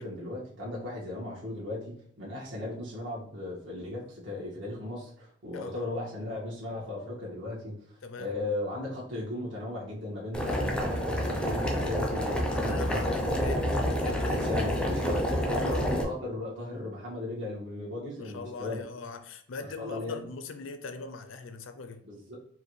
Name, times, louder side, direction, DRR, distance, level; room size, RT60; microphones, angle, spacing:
voice 1, 0.0-7.7 8.2-13.5 14.2-15.3 15.6-18.8 19.8-20.2 22.0-22.4, left 2 dB, 65° right, 1.7 m, -37 dB
voice 2, 5.5-5.9 8.0-8.3 12.5-14.5 15.5-15.8 18.1-22.0, left 3 dB, 75° left, 0.5 m, -41 dB
Boiling, 10.3-16.0, equal, 5° left, 0.5 m, -28 dB
4.9 x 2.6 x 3.1 m
head